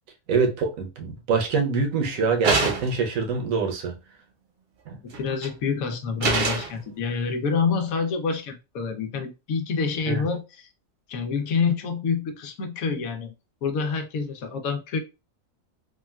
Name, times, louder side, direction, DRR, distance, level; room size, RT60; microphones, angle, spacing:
voice 1, 0.3-3.9 4.9-5.0 10.1-10.2, right 5 dB, 75° right, 1.2 m, -25 dB
sound 1, 2.4-3.1 5.1-5.5 6.2-6.8, right 3 dB, 55° right, 0.8 m, -24 dB
voice 2, 5.2-10.7 11.1-13.3 13.6-15.0, left 5 dB, 85° left, 1.1 m, -27 dB
3.5 x 2.3 x 2.2 m
omnidirectional pair, 1.4 m